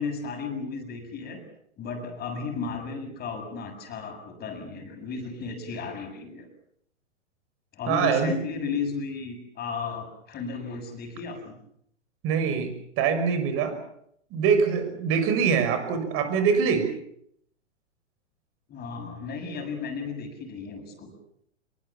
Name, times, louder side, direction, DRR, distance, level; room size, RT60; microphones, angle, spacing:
voice 1, 0.0-1.4 1.8-6.5 7.7-11.6 18.7-21.1, left 5 dB, 25° left, 5 dB, 7.3 m, -34 dB
voice 2, 7.9-8.3 12.2-13.8 14.3-16.9, right 6 dB, 35° right, 9 dB, 6.2 m, -24 dB
26.0 x 23.5 x 7.3 m, 0.71 s
hypercardioid pair, 125°, 37 cm